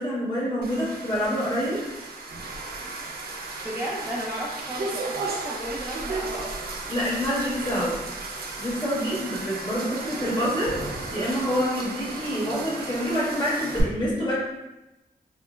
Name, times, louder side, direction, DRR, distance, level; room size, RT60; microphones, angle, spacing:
voice 1, 0.0-1.9 6.9-8.0 8.6-14.3, equal, 30° left, -7 dB, 1.3 m, -27 dB
sound 1, 0.6-13.8, right 3 dB, 80° right, 0.4 m, -35 dB
voice 2, 3.6-6.7 9.8-9.9, equal, 15° right, -6 dB, 0.5 m, -34 dB
3.6 x 2.1 x 2.2 m, 0.99 s
cardioid pair, 75°, 16 cm